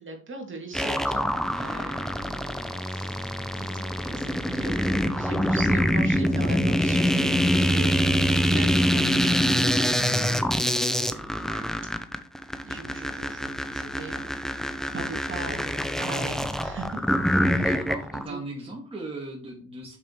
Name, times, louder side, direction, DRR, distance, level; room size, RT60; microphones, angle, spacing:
voice 1, 0.0-8.0 8.4-10.2 11.0-11.7 12.6-17.2 17.4-18.4, right 3 dB, 40° right, 2 dB, 2.4 m, -40 dB
sound 1, 0.7-18.2, equal, ahead, 0.7 m, -25 dB
voice 2, 17.6-20.0, right 2 dB, 20° right, -2 dB, 2.0 m, -38 dB
6.4 x 6.3 x 3.2 m, 0.39 s
cardioid pair, 90°, 30 cm